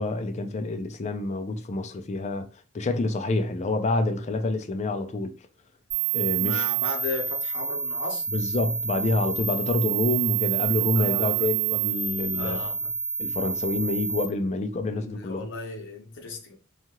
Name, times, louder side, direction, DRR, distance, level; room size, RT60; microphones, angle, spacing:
voice 1, 0.0-2.5 2.7-5.3 6.1-6.6 8.3-12.6 13.2-15.5, left 2 dB, 35° left, 0.4 m, -27 dB
sound 1, 5.9-14.2, right 8 dB, 40° right, 0.9 m, -28 dB
voice 2, 6.3-8.2 11.0-11.5 12.3-12.9 14.9-16.6, left 3 dB, 60° left, 0.8 m, -35 dB
2.8 x 2.4 x 2.8 m
head